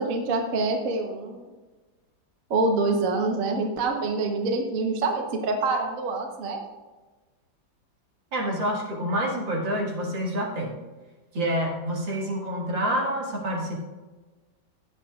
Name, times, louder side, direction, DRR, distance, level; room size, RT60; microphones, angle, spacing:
voice 1, 0.0-1.4 2.5-6.6, right 3 dB, 50° right, 3 dB, 1.3 m, -26 dB
voice 2, 8.3-10.8 11.3-13.8, equal, 75° right, -2 dB, 2.6 m, -27 dB
16.0 x 9.0 x 2.4 m, 1.2 s
omnidirectional pair, 2.1 m